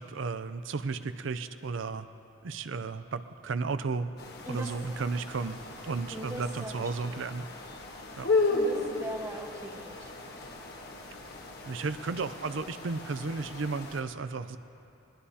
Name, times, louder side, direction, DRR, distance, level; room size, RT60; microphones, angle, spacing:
voice 1, 0.0-2.1 2.4-4.1 4.5-5.6 5.8-7.4 8.2-8.3 11.6-14.6, right 4 dB, 70° right, 11 dB, 0.5 m, -33 dB
sound 1, 4.2-14.0, left 3 dB, 55° left, 1.4 m, -35 dB
voice 2, 4.5-4.8 6.1-7.3 8.4-10.1, right 1 dB, 15° right, 0 dB, 1.4 m, -41 dB
21.0 x 20.5 x 2.8 m, 2.8 s
head